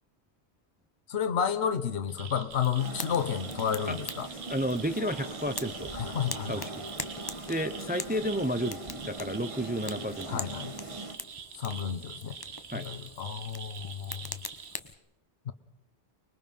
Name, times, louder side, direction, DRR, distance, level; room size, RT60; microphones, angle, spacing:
voice 1, 1.1-4.3 5.9-6.7 10.3-10.7 11.5-12.3 12.7-14.3 15.5-15.6, left 8 dB, 75° left, 9 dB, 1.3 m, -31 dB
sound 1, 2.1-14.8, right 6 dB, 70° right, 1.3 m, -45 dB
Fire, 2.5-14.9, left 3 dB, 20° left, 0.9 m, -44 dB
sound 2, 2.8-11.1, right 2 dB, 30° right, 1.5 m, -41 dB
voice 2, 4.5-5.9 6.4-6.8 7.5-10.5 12.7-12.9, equal, 10° right, 10 dB, 0.6 m, -32 dB
25.0 x 21.0 x 5.5 m, 0.89 s
omnidirectional pair, 1.1 m